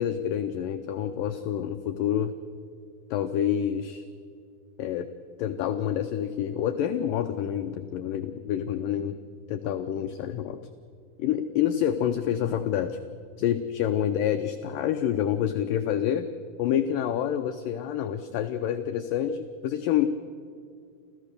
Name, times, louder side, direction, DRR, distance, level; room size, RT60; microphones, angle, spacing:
voice 1, 0.0-2.3 3.1-4.1 4.8-5.1 5.4-9.2 9.5-10.6 11.2-13.0 13.4-16.3 16.6-20.1, left 10 dB, 90° left, 8 dB, 1.9 m, -27 dB
29.0 x 14.0 x 6.7 m, 2.3 s
omnidirectional pair, 4.8 m